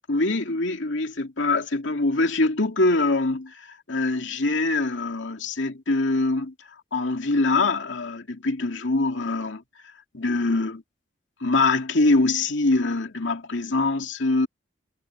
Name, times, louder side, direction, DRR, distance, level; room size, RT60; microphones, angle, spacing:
voice 1, 0.0-6.5 6.9-9.6 10.1-10.8 11.4-14.5, left 2 dB, 75° left, 2.4 m, -24 dB
head